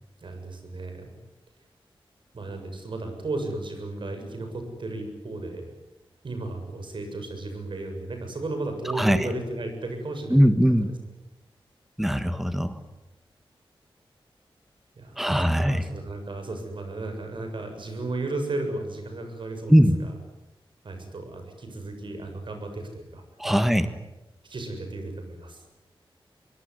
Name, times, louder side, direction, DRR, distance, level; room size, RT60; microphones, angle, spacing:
voice 1, 0.2-1.2 2.3-5.7 6.2-10.4 10.8-10.9 15.0-19.7 20.0-20.1 20.8-23.8 24.4-25.6, right 2 dB, 60° right, 5 dB, 7.3 m, -34 dB
voice 2, 8.9-9.3 10.3-10.9 12.0-12.8 15.2-15.8 19.7-19.9 23.4-23.9, equal, 5° right, 9 dB, 1.5 m, -20 dB
24.0 x 23.0 x 9.6 m, 0.97 s
wide cardioid pair, 130°, 9 cm